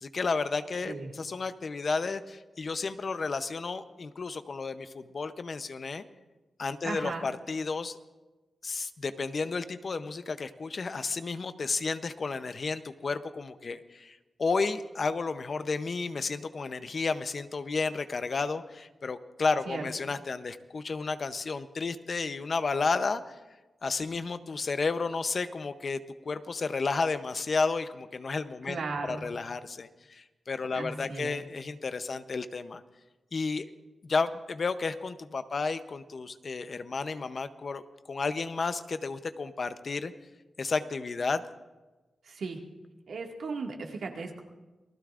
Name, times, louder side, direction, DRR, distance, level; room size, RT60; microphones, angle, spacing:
voice 1, 0.0-6.0 6.6-8.0 8.6-23.4 23.8-32.8 33.3-33.7 34.1-37.8 38.1-40.1 40.6-41.4, left 4 dB, 45° left, 11 dB, 0.7 m, -32 dB
voice 2, 6.8-7.3 19.7-19.8 28.7-29.2 30.7-31.4 42.3-42.6 43.1-44.4, right 4 dB, 80° right, 1 dB, 1.9 m, -36 dB
28.5 x 19.5 x 2.5 m, 1.2 s
wide cardioid pair, 125°, 0 cm